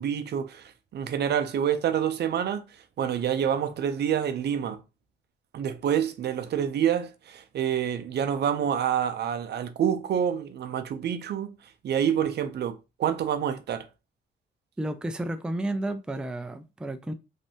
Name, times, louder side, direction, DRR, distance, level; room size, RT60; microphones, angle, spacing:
voice 1, 0.0-2.6 3.0-4.8 5.5-11.5 11.8-13.9, right 9 dB, 55° right, 0.5 m, -27 dB
voice 2, 14.8-17.1, right 1 dB, 5° right, 0.4 m, -32 dB
3.2 x 2.6 x 2.7 m
cardioid pair, 90°, 20 cm